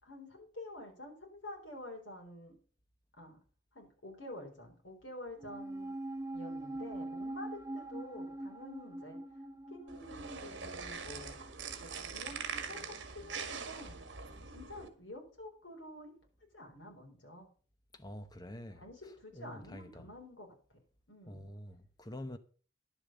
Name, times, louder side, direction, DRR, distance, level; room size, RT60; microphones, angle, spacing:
voice 1, 0.0-2.6 3.2-3.4 3.7-6.0 6.3-9.2 9.7-11.4 11.8-14.0 14.5-16.1 16.5-17.5 18.8-20.8 21.1-21.5, left 1 dB, 75° left, 4.1 m, -49 dB
sound 1, 5.4-12.0 12.2-12.3, right 1 dB, 15° right, 0.6 m, -43 dB
sound 2, 9.9-14.9, right 5 dB, 65° right, 1.8 m, -43 dB
voice 2, 17.9-20.1 21.3-22.4, left 1 dB, 20° left, 0.9 m, -47 dB
11.0 x 6.9 x 6.7 m
head